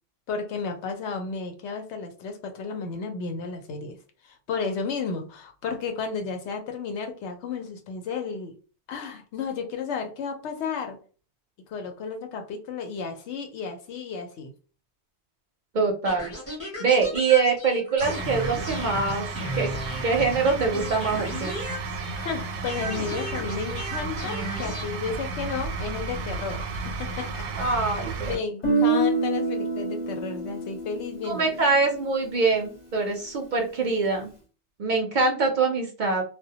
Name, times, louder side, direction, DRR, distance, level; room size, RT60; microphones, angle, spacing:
voice 1, 0.3-4.0 4.2-8.5 8.9-11.0 11.7-14.5 22.1-27.7 28.2-31.5, left 5 dB, 90° left, 0.9 m, -33 dB
voice 2, 15.7-16.3 16.6-19.3 19.5-19.7 20.0-21.5 27.5-28.4 31.2-34.3 34.8-36.2, right 4 dB, 55° right, 0.6 m, -24 dB
sound 1, 16.0-22.3 22.6-24.8, equal, 15° left, 0.5 m, -36 dB
sound 2, 18.0-28.3, right 4 dB, 90° right, 0.9 m, -33 dB
Guitar, 28.6-32.6, right 3 dB, 45° left, 0.8 m, -27 dB
2.1 x 2.1 x 2.7 m
omnidirectional pair, 1.1 m